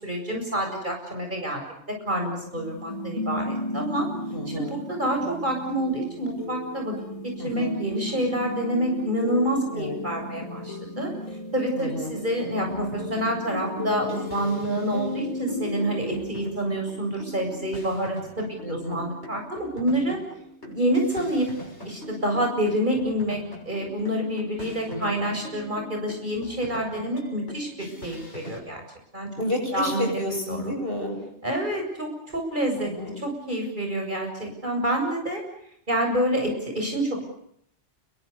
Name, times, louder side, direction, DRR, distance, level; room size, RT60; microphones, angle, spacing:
voice 1, 0.0-1.6 1.9-4.1 4.5-7.0 7.4-11.1 11.5-20.2 20.7-21.5 21.8-23.4 23.7-28.8 29.1-29.3 29.7-30.1 30.5-30.7 31.4-32.9 33.2-35.4 35.9-37.2, right 1 dB, 45° right, 2 dB, 7.8 m, -27 dB
sound 1, 2.5-16.5, left 1 dB, 30° left, 2.2 m, -34 dB
voice 2, 4.3-4.8 7.4-7.8 9.7-10.0 11.7-12.2 18.6-19.1 24.9-25.2 29.4-31.3 32.7-33.2, left 1 dB, 55° left, 2 dB, 8.3 m, -31 dB
Improvized engineered drumming, 11.8-28.6, equal, 75° left, 6.9 m, -43 dB
29.0 x 23.0 x 6.9 m, 0.70 s
omnidirectional pair, 1.2 m